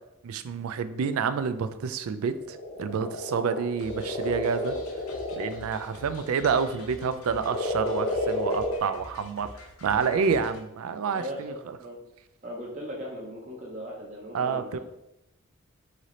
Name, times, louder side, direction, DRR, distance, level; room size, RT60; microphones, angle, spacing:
voice 1, 0.2-4.8 5.4-9.5 9.8-11.8 14.3-14.8, right 6 dB, 75° right, 12 dB, 0.4 m, -28 dB
sound 1, 2.4-6.8 7.4-8.8, left 1 dB, 30° left, 0.7 m, -31 dB
sound 2, 3.8-10.6, left 2 dB, 75° left, 0.8 m, -47 dB
voice 2, 11.1-12.0 12.4-14.8, equal, 35° right, -3 dB, 0.6 m, -38 dB
4.1 x 3.2 x 3.8 m, 0.89 s
head